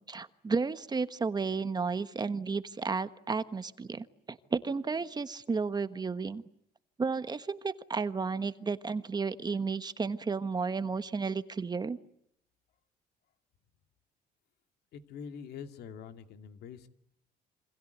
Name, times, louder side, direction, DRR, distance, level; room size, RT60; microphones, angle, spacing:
voice 1, 0.0-6.4 7.0-12.0, right 4 dB, 25° right, 12 dB, 1.3 m, -33 dB
voice 2, 14.9-16.9, left 7 dB, 75° left, 7 dB, 2.4 m, -45 dB
28.5 x 26.0 x 8.1 m, 0.76 s
cardioid pair, 110°, 17 cm